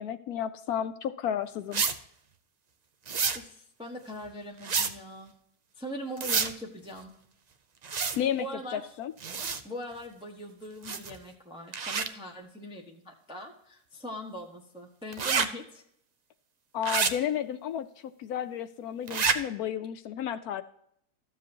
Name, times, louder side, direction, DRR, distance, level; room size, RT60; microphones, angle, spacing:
voice 1, 0.0-1.8 7.9-8.5 8.7-9.1 16.7-17.9 18.2-20.6, left 9 dB, 75° left, 11 dB, 1.0 m, -32 dB
sound 1, 1.7-2.0 3.1-3.4 4.6-4.9 6.2-6.5 7.8-8.2 9.2-9.6 10.8-11.2 11.7-12.1 15.1-15.5 16.8-17.1 19.1-19.4, right 5 dB, 80° right, 0.3 m, -28 dB
voice 2, 3.3-5.3 5.8-7.1 8.1-8.9 9.3-15.8, equal, 5° right, 0 dB, 1.0 m, -41 dB
13.5 x 7.5 x 2.8 m, 0.69 s
omnidirectional pair, 1.7 m